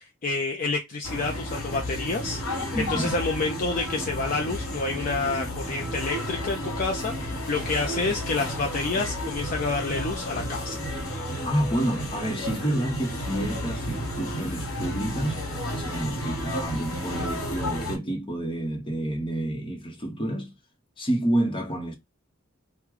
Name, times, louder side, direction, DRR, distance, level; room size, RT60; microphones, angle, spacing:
voice 1, 0.0-10.8, left 3 dB, 40° left, 0.5 m, -29 dB
sound 1, 1.0-18.0, equal, 80° left, 1.5 m, -32 dB
voice 2, 2.7-3.1 11.4-15.4 15.8-20.5 21.0-21.9, right 1 dB, 25° left, 0.9 m, -29 dB
3.1 x 2.2 x 3.6 m
head